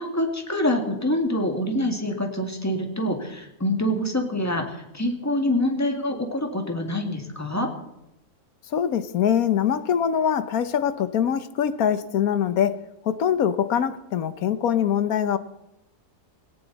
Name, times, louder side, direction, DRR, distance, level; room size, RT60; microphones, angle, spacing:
voice 1, 0.0-7.7, left 1 dB, 10° left, 3 dB, 2.0 m, -26 dB
voice 2, 8.7-15.4, left 8 dB, 70° left, 13 dB, 1.3 m, -23 dB
18.0 x 17.5 x 4.1 m, 0.87 s
omnidirectional pair, 1.6 m